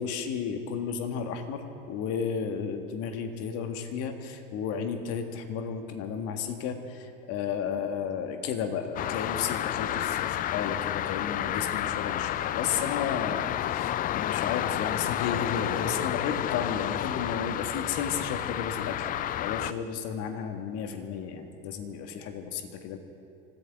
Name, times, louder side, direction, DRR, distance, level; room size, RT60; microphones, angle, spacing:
voice 1, 0.0-19.1 19.4-23.0, left 7 dB, 55° left, 6 dB, 1.8 m, -33 dB
sound 1, 9.0-19.7, left 12 dB, 30° left, 0.4 m, -30 dB
25.0 x 15.0 x 3.7 m, 2.7 s
hypercardioid pair, 80°, 31 cm